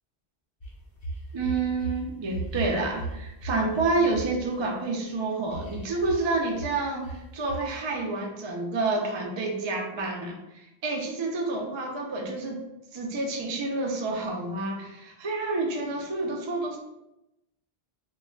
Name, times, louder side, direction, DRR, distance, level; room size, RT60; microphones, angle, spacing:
sound 1, 0.6-2.0 2.3-4.3 5.5-6.3 6.5-6.7 7.0-7.2 7.5-7.6, right 2 dB, 40° left, 0.6 m, -35 dB
voice 1, 1.3-12.6 12.9-16.8, right 3 dB, 50° right, 0 dB, 0.3 m, -29 dB
2.2 x 2.1 x 3.6 m, 0.91 s
omnidirectional pair, 1.1 m